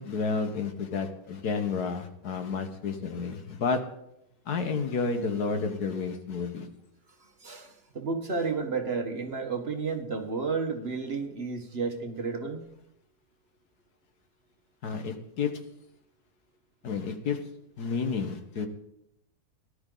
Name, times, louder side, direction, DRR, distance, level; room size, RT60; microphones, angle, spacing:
voice 1, 0.0-3.8 4.5-6.7 14.8-15.5 16.8-17.4 17.8-18.7, left 5 dB, 80° left, 7 dB, 1.8 m, -30 dB
voice 2, 7.4-12.6, right 4 dB, 40° right, 5 dB, 1.5 m, -32 dB
18.0 x 11.5 x 3.9 m, 0.80 s
omnidirectional pair, 1.6 m